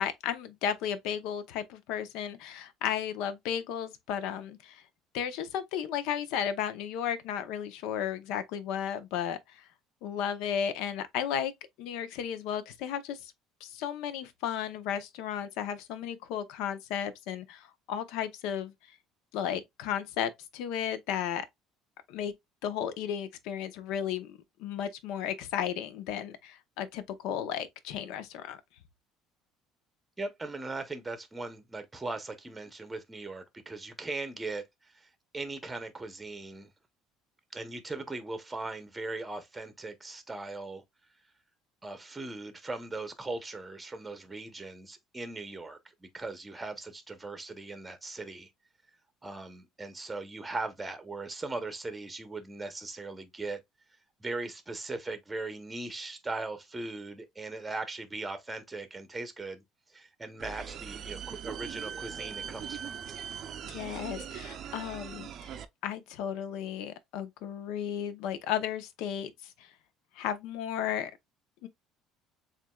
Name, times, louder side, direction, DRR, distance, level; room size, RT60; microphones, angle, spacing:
voice 1, 0.0-4.8 5.1-9.6 10.0-11.5 11.8-13.3 13.6-18.7 19.3-21.4 22.1-22.3 22.6-28.6 63.6-65.3 65.8-69.3 70.2-71.1 71.6-71.7, left 9 dB, 75° left, 0.7 m, -34 dB
voice 2, 30.2-36.7 37.5-40.8 41.8-48.5 49.2-53.6 54.2-59.6 59.9-63.0, right 3 dB, 10° right, 0.8 m, -39 dB
sound 1, 60.4-65.6, right 8 dB, 45° right, 0.5 m, -40 dB
7.2 x 2.5 x 2.3 m
cardioid pair, 140°, 0 cm